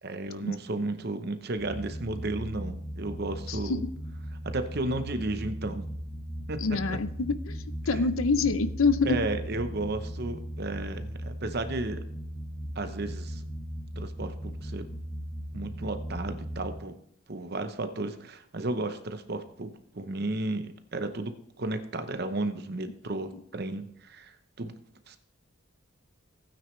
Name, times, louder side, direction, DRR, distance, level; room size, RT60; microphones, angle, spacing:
voice 1, 0.0-3.8 4.4-5.9 6.5-7.0 9.0-12.0 12.7-13.4 14.0-14.9 15.5-17.0 17.3-24.8 25.1-25.2, right 2 dB, 50° right, 9 dB, 0.8 m, -33 dB
sound 1, 1.6-16.8, equal, 25° left, 1.7 m, -37 dB
voice 2, 3.5-3.9 6.6-7.6 7.9-9.2, left 4 dB, 85° left, 13 dB, 0.7 m, -26 dB
16.0 x 9.1 x 3.2 m, 0.68 s
head